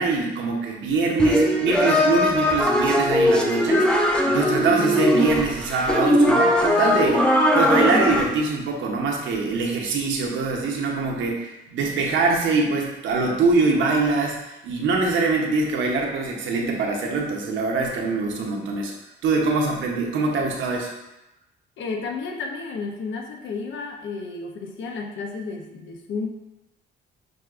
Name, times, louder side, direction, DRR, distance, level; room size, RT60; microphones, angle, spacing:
voice 1, 0.0-18.9 19.2-20.9, right 3 dB, 75° right, 0 dB, 0.8 m, -24 dB
sound 1, 1.2-8.3, equal, 5° left, 0.5 m, -20 dB
voice 2, 21.8-26.3, left 4 dB, 70° left, 3 dB, 0.7 m, -32 dB
6.3 x 2.7 x 2.5 m, 0.97 s
cardioid pair, 90°, 20 cm